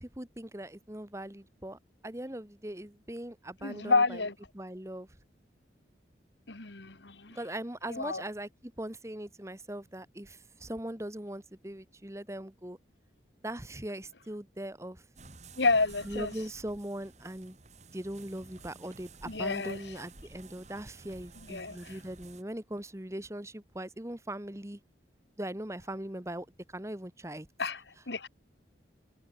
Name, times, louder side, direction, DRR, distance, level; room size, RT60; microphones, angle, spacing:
voice 1, 0.0-4.2 4.5-5.1 7.3-12.8 13.4-15.0 16.1-17.6 17.9-24.8 25.4-26.5 26.7-27.5, right 1 dB, 15° right, 1.3 m, -40 dB
voice 2, 3.6-4.3 6.5-7.4 7.9-8.2 15.6-16.3 19.3-19.8 21.5-22.0 27.6-28.3, left 3 dB, 70° left, 2.0 m, -30 dB
sound 1, 15.2-22.4, right 3 dB, 40° right, 2.3 m, -52 dB
head